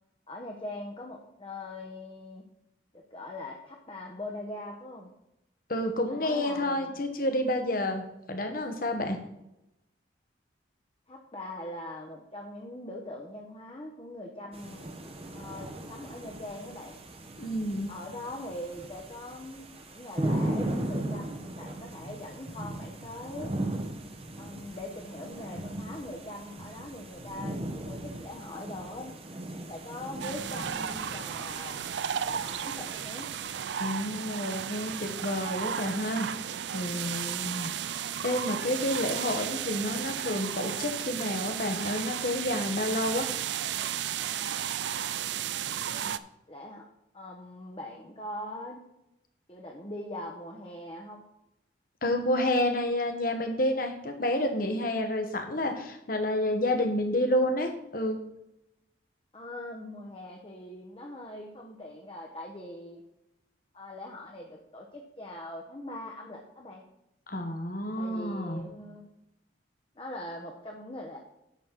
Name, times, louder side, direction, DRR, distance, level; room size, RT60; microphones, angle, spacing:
voice 1, 0.3-2.4 2.9-5.1 6.1-6.9 11.1-14.9 15.3-17.0 17.9-23.5 24.4-29.1 29.7-31.8 32.2-33.3 45.9-46.2 46.5-46.8 47.1-48.8 49.5-51.2 59.3-63.0 63.7-66.8 68.0-69.0 70.0-71.2, left 1 dB, 30° left, 0 dB, 1.1 m, -42 dB
voice 2, 5.7-9.2 17.4-17.9 33.8-36.3 36.7-43.3 52.0-58.2 67.3-68.6, left 1 dB, 50° left, 5 dB, 1.4 m, -29 dB
sound 1, 14.5-33.6, right 1 dB, 30° right, 1.0 m, -38 dB
sound 2, 30.2-46.2, right 9 dB, 70° right, 0.4 m, -34 dB
9.9 x 4.2 x 7.4 m, 0.86 s
head